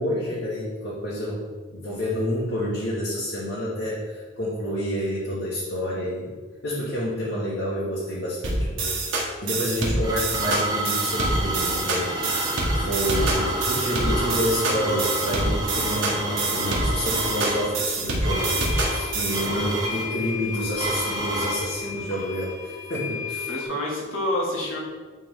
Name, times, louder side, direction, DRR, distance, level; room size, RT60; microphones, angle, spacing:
voice 1, 0.0-6.4 6.6-12.4 12.7-23.5, equal, 65° left, -7 dB, 1.3 m, -29 dB
sound 1, 8.4-19.5, right 2 dB, 85° right, 1.5 m, -26 dB
sound 2, 9.6-21.7, right 1 dB, 20° right, 1.0 m, -29 dB
voice 2, 13.4-14.4 19.5-19.8 23.5-24.8, left 1 dB, 90° left, -3 dB, 1.8 m, -30 dB
sound 3, 17.2-17.3 18.3-23.7, left 7 dB, 15° left, 0.6 m, -35 dB
9.3 x 3.5 x 3.6 m, 1.5 s
head